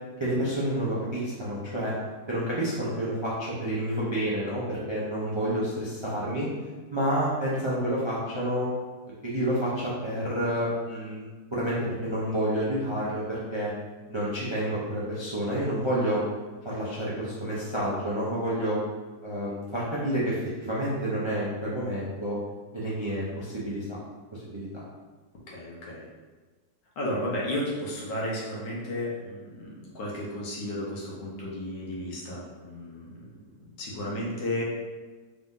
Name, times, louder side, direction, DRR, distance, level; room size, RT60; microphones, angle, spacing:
voice 1, 0.2-1.9 2.3-6.5 6.9-8.7 9.2-13.7 14.1-16.2 16.6-18.8 19.2-22.4 22.7-23.9 24.3-24.8, right 1 dB, 50° right, -8 dB, 0.3 m, -29 dB
voice 2, 25.5-26.1 27.0-33.4 33.8-34.6, left 1 dB, 80° left, -5 dB, 1.7 m, -33 dB
4.0 x 2.7 x 3.7 m, 1.3 s
omnidirectional pair, 1.9 m